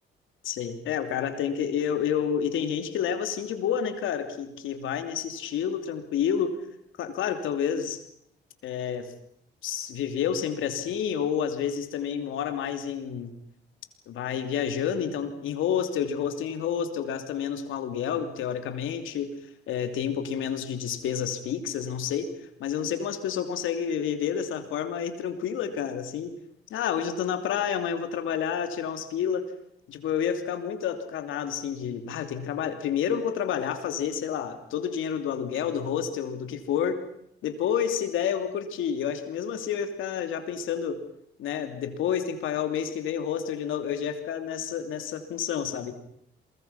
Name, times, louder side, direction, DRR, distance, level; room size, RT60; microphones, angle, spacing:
voice 1, 0.4-6.6 7.0-8.0 8.6-9.1 9.6-13.4 14.1-19.3 19.7-22.3 22.6-26.3 26.7-29.5 29.9-37.0 37.4-41.0 41.4-45.9, left 8 dB, 85° left, 8 dB, 2.9 m, -29 dB
29.5 x 22.5 x 5.9 m, 0.71 s
cardioid pair, 90°, 20 cm